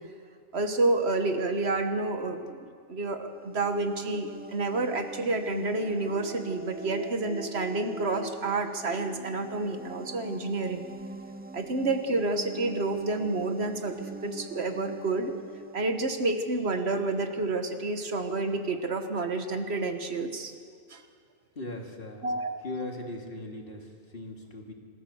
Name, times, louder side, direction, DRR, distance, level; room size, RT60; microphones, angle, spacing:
voice 1, 0.5-10.9 11.5-15.4 15.7-20.5 20.9-21.0 22.2-22.6, right 2 dB, 55° right, 6 dB, 1.6 m, -29 dB
sound 1, 3.2-16.8, right 2 dB, 10° right, 0.5 m, -44 dB
voice 2, 21.6-22.3 22.6-24.7, left 2 dB, 45° left, 1 dB, 2.5 m, -39 dB
25.5 x 14.5 x 7.1 m, 2.1 s
omnidirectional pair, 1.3 m